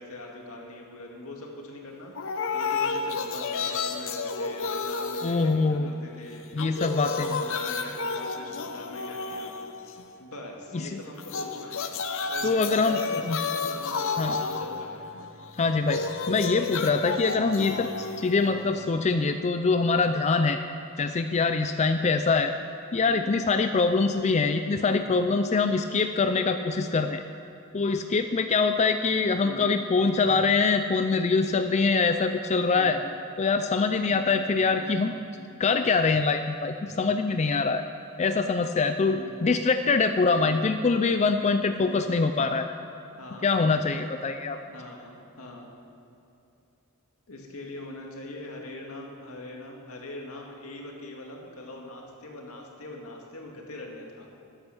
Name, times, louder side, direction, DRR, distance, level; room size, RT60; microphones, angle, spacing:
voice 1, 0.0-9.5 10.2-11.9 12.3-15.1 18.8-18.9 23.0-23.3 25.0-25.2 29.4-29.7 32.7-33.0 34.1-34.5 34.8-35.1 39.0-39.3 40.3-40.7 41.8-42.2 43.2-43.5 44.7-45.7 47.3-54.3, left 1 dB, 85° left, 0 dB, 2.1 m, -42 dB
sound 1, 2.2-6.1 6.4-10.2 11.2-19.2, left 4 dB, 65° left, 0.8 m, -32 dB
voice 2, 5.2-5.9 6.5-7.4 12.4-13.0 13.2-13.4 14.2-14.4 15.6-20.6 21.0-22.5 22.9-27.2 27.7-33.0 33.4-35.1 35.6-37.8 38.2-42.7 43.4-44.6, left 4 dB, 30° left, 8 dB, 0.4 m, -24 dB
13.0 x 9.9 x 6.0 m, 2.8 s
head